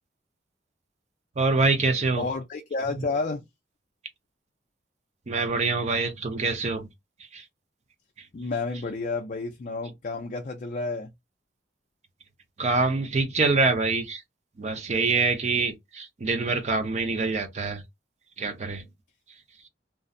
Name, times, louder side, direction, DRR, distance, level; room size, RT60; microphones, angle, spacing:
voice 1, 1.4-2.2 5.3-6.8 7.3-7.4 12.6-14.2 14.6-17.8 18.4-18.8, right 3 dB, 40° right, 0.6 m, -25 dB
voice 2, 2.2-3.4 8.3-11.1, left 3 dB, 45° left, 0.4 m, -30 dB
2.5 x 2.0 x 2.5 m
head